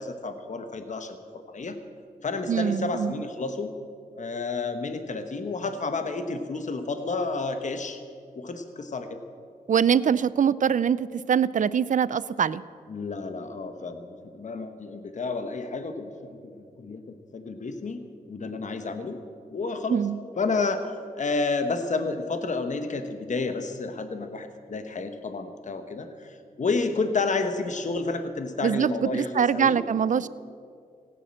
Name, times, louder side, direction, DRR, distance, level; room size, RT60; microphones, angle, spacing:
voice 1, 0.0-1.8 2.2-3.7 4.1-8.0 8.4-9.2 12.9-17.0 17.3-19.2 19.5-20.0 20.4-20.9 21.2-29.8, left 3 dB, 55° left, 7 dB, 1.2 m, -30 dB
voice 2, 2.5-3.2 9.7-12.6 19.9-20.2 28.6-30.3, right 8 dB, 60° right, 18 dB, 0.5 m, -23 dB
16.5 x 9.2 x 7.6 m, 2.3 s
cardioid pair, 55°, 15 cm